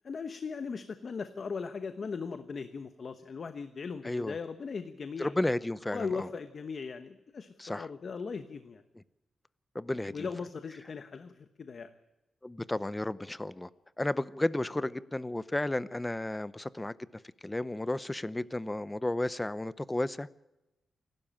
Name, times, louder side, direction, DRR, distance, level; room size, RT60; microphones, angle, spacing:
voice 1, 0.0-5.3 5.9-8.8 10.1-11.9, left 5 dB, 45° left, 9 dB, 1.1 m, -38 dB
voice 2, 4.0-4.4 5.2-6.3 7.6-7.9 9.7-10.3 12.4-13.7 14.0-16.9 17.4-20.4, left 1 dB, 10° left, 17 dB, 0.6 m, -33 dB
28.0 x 12.5 x 8.9 m, 1.0 s
wide cardioid pair, 130°, 0 cm